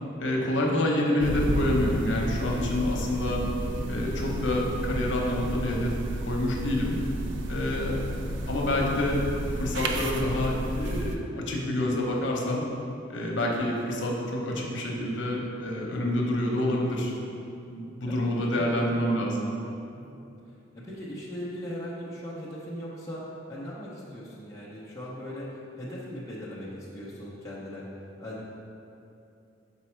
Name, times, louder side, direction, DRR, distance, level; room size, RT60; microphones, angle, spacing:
voice 1, 0.2-3.4 3.9-5.9 6.3-7.0 7.5-8.0 8.5-9.2 9.6-12.6 13.1-17.1 17.7-19.4, left 1 dB, 75° left, -1 dB, 0.9 m, -27 dB
sound 1, 1.2-11.2, right 1 dB, 80° right, 0.5 m, -31 dB
voice 2, 7.7-8.1 18.1-18.8 19.9-23.2 23.5-27.9 28.2-28.4, equal, 15° left, -8 dB, 0.7 m, -39 dB
5.4 x 4.1 x 4.4 m, 2.7 s
head